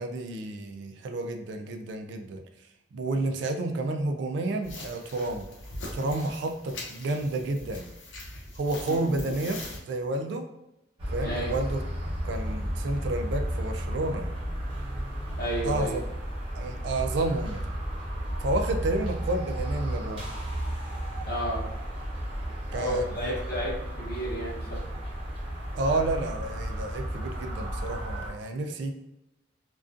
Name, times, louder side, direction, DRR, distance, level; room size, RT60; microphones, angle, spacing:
voice 1, 0.0-2.4 2.9-5.5 5.9-7.9 8.6-9.6 9.9-10.5 11.1-14.3 15.6-16.0 16.5-17.7 18.4-20.2 22.7-23.3 25.7-28.9, right 2 dB, 65° right, 5 dB, 0.3 m, -30 dB
sound 1, 4.6-9.8, left 1 dB, 85° left, 0.6 m, -41 dB
voice 2, 8.9-9.5 11.2-11.5 15.4-16.0 21.2-21.6 22.7-24.8, equal, 50° left, -5 dB, 0.8 m, -32 dB
sound 2, 11.0-28.3, equal, 30° right, 0.7 m, -33 dB
2.4 x 2.3 x 2.4 m, 0.89 s
head